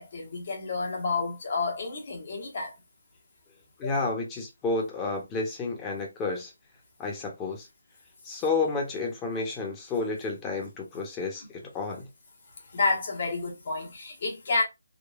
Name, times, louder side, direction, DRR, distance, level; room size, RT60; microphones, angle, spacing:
voice 1, 0.0-2.7 3.8-4.0 12.7-14.6, left 3 dB, 50° left, 1.2 m, -30 dB
voice 2, 3.8-6.5 7.0-7.7 8.2-12.1, left 3 dB, 15° left, 0.9 m, -31 dB
3.7 x 2.3 x 2.5 m
figure-of-eight pair, 155°, 0 cm